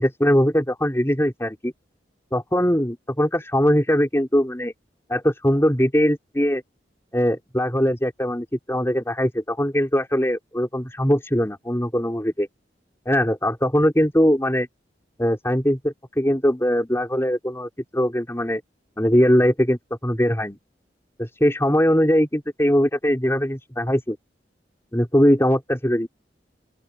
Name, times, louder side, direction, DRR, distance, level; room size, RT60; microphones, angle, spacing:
voice 1, 0.0-1.7 2.3-4.7 5.1-6.6 7.1-12.5 13.1-14.7 15.2-18.6 19.0-20.6 21.2-24.2 24.9-26.1, equal, 15° left, 4.3 m, -21 dB
open air
head